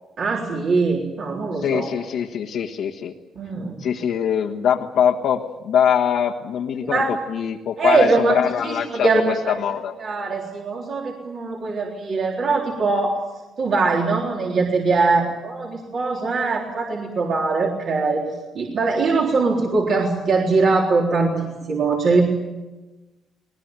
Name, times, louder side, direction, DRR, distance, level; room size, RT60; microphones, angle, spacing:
voice 1, 0.2-1.9 3.3-3.8 6.8-7.1 7.8-9.5 10.0-13.2 13.6-18.2 18.5-22.2, right 3 dB, 55° right, -2 dB, 3.8 m, -21 dB
voice 2, 1.6-3.1 3.8-7.0 7.3-9.9, left 8 dB, 80° left, 1 dB, 1.6 m, -22 dB
20.5 x 20.5 x 9.1 m, 1.1 s
cardioid pair, 90°, 0 cm